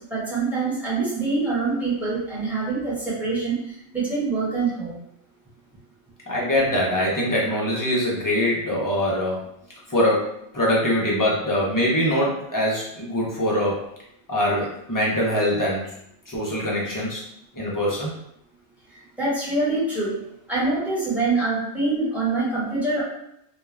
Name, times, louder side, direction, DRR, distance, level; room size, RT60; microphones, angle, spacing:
voice 1, 0.1-3.6 3.9-4.9 19.2-20.1 20.5-23.0, right 3 dB, ahead, -9 dB, 1.0 m, -24 dB
voice 2, 6.3-9.4 9.9-13.9 14.3-15.9 16.3-17.2 17.6-18.1, left 1 dB, 30° left, -5 dB, 0.4 m, -23 dB
2.3 x 2.2 x 3.1 m, 0.76 s
omnidirectional pair, 1.2 m